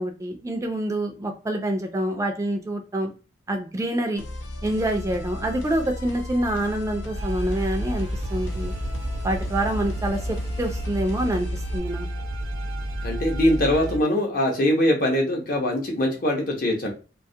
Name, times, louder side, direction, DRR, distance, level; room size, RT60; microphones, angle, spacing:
voice 1, 0.0-3.1 3.5-4.2 4.6-8.7 9.2-11.5 11.7-12.1, right 1 dB, 15° right, 4 dB, 0.3 m, -26 dB
sound 1, 4.2-11.8, left 1 dB, 85° left, 0.5 m, -35 dB
sound 2, 7.1-14.0, equal, 80° right, 0.5 m, -31 dB
voice 2, 13.0-16.9, left 1 dB, 50° left, 1 dB, 0.7 m, -22 dB
2.2 x 2.0 x 2.6 m, 0.34 s
head